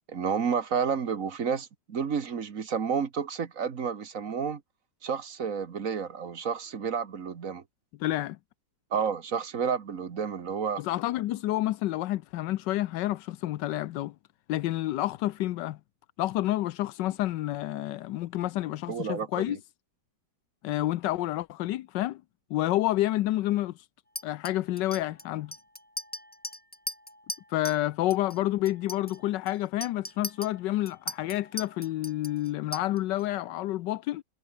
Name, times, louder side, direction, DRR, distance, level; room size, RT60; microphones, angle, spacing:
voice 1, 0.1-4.6 5.0-7.6 8.9-10.8 18.9-19.6, right 6 dB, 50° right, 1.8 m, -30 dB
voice 2, 8.0-8.4 10.8-14.1 14.5-15.8 16.2-19.6 20.6-22.2 22.5-23.9 24.2-25.5 27.5-34.2, left 15 dB, 85° left, 1.3 m, -29 dB
Chink clink, 24.2-27.8 28.1-28.4 28.7-33.2, left 1 dB, 5° left, 1.8 m, -40 dB
omnidirectional pair, 1.9 m